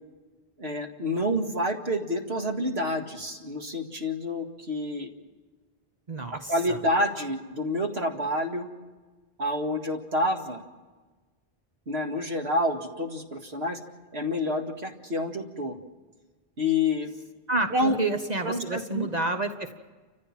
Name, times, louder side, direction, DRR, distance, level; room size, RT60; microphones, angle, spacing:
voice 1, 0.6-5.1 6.3-8.7 9.4-10.6 11.9-13.8 14.1-15.8 16.6-17.1 17.7-18.0 18.4-19.1, left 1 dB, 80° right, 3 dB, 2.3 m, -28 dB
voice 2, 6.1-6.8 17.5-19.8, right 2 dB, 40° right, 6 dB, 1.2 m, -29 dB
29.5 x 15.0 x 7.4 m, 1.3 s
omnidirectional pair, 1.1 m